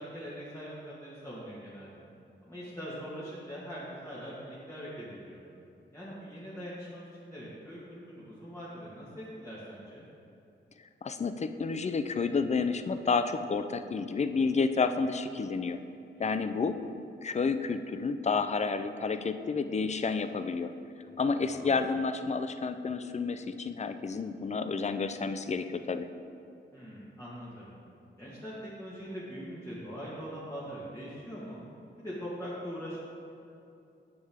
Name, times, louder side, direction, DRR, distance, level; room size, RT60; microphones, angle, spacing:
voice 1, 0.0-2.0 2.4-5.4 5.9-10.0 21.0-21.8 26.7-27.7 28.2-31.6 32.0-33.0, equal, 15° left, -8 dB, 1.5 m, -42 dB
voice 2, 11.0-15.8 16.2-16.8 17.2-20.7 21.2-26.1, left 4 dB, 35° left, 10 dB, 0.4 m, -30 dB
9.5 x 6.6 x 3.5 m, 2.7 s
wide cardioid pair, 110°, 19 cm